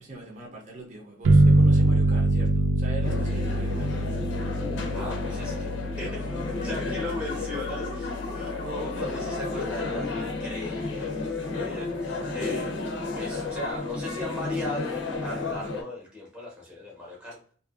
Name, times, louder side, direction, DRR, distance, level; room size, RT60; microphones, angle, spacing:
voice 1, 0.0-3.9, right 2 dB, 40° right, -1 dB, 0.6 m, -40 dB
sound 1, 1.2-10.5, right 2 dB, 85° right, 0.3 m, -25 dB
sound 2, 3.0-15.8, left 3 dB, 85° left, 0.6 m, -32 dB
voice 2, 4.9-11.1 11.4-12.7 13.1-17.4, left 1 dB, 5° right, -4 dB, 0.7 m, -37 dB
sound 3, 6.6-11.4, left 4 dB, 45° left, 0.6 m, -44 dB
2.6 x 2.3 x 2.4 m, 0.42 s
head